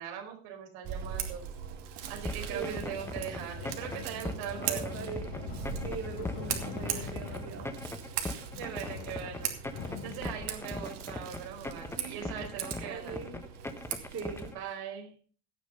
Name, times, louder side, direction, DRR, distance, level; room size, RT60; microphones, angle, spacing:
voice 1, 0.0-1.4 2.1-5.0 8.6-9.5 10.0-13.2 14.5-15.1, right 8 dB, 90° right, 2 dB, 5.0 m, -40 dB
Scissors, 0.8-14.5, right 8 dB, 60° right, 2.7 m, -40 dB
sound 1, 2.3-14.6, left 2 dB, 5° left, 1.0 m, -39 dB
voice 2, 2.5-3.0 4.5-5.6 5.8-7.7 12.0-12.4 12.8-13.4 14.1-14.5, right 6 dB, 30° right, 1 dB, 3.1 m, -41 dB
sound 2, 2.8-10.6, left 6 dB, 45° left, 4.2 m, -43 dB
16.5 x 7.2 x 5.6 m, 0.42 s
cardioid pair, 150°, 47 cm